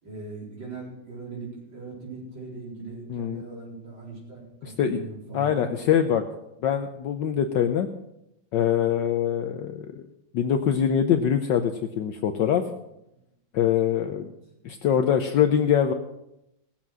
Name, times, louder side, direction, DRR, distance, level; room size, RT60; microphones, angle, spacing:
voice 1, 0.0-5.7 14.2-14.3, right 3 dB, 65° right, -4 dB, 5.0 m, -39 dB
voice 2, 3.1-3.4 4.6-5.0 5.3-6.2 6.6-7.9 8.5-10.0 10.3-12.6 13.5-14.3 14.6-15.9, left 9 dB, 70° left, 6 dB, 1.3 m, -23 dB
18.0 x 7.3 x 6.1 m, 0.84 s
omnidirectional pair, 2.2 m